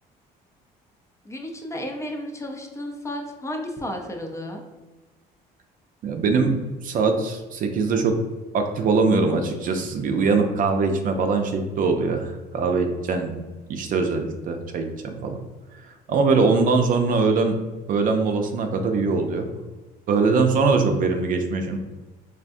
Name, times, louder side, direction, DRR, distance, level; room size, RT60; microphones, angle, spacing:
voice 1, 1.2-4.6, left 1 dB, 15° left, 2 dB, 0.5 m, -33 dB
voice 2, 6.0-6.6 6.8-8.1 8.5-13.3 13.7-15.4 16.1-17.6 17.9-19.5 20.1-21.8, right 4 dB, 55° right, 5 dB, 0.5 m, -22 dB
3.5 x 2.5 x 2.5 m, 1.2 s
cardioid pair, 110°, 17 cm